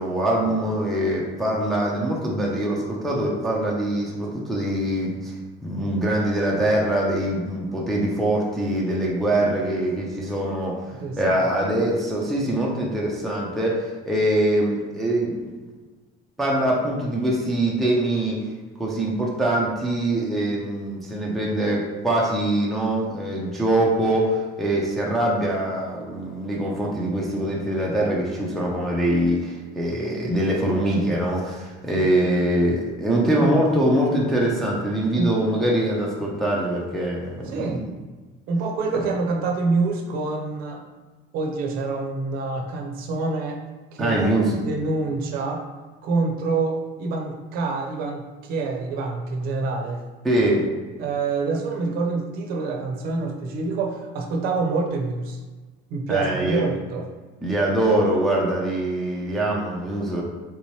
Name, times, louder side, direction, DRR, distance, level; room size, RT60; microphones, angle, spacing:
voice 1, 0.0-5.3 5.6-15.5 16.4-18.4 18.8-37.8 44.0-44.5 50.2-50.7 56.1-56.7 57.4-60.2, right 1 dB, ahead, -4 dB, 0.3 m, -23 dB
voice 2, 11.0-11.7 32.2-32.3 35.2-35.3 37.5-37.8 38.5-40.8 41.3-43.6 43.9-44.3 44.6-45.6 46.0-50.0 51.0-55.4 55.9-57.1, right 3 dB, 55° right, 2 dB, 0.5 m, -26 dB
3.3 x 2.8 x 3.1 m, 1.3 s
cardioid pair, 170°, 19 cm